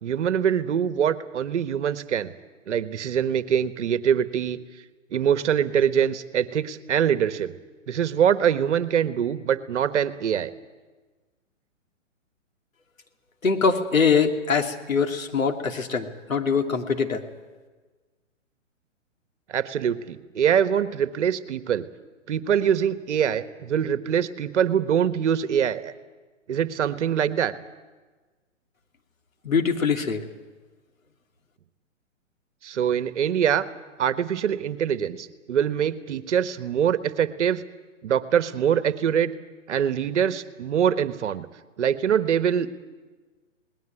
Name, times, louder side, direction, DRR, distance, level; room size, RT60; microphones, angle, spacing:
voice 1, 0.0-2.3 2.7-4.6 5.1-7.5 7.9-10.5 19.5-21.9 22.3-25.9 26.5-27.5 32.6-33.6 34.0-37.6 38.0-39.3 39.7-41.5 41.8-42.8, right 8 dB, 60° right, 12 dB, 1.5 m, -24 dB
voice 2, 13.4-17.2 29.4-30.2, left 5 dB, 85° left, 4 dB, 2.8 m, -23 dB
20.5 x 19.0 x 9.2 m, 1.3 s
hypercardioid pair, 135°, 39 cm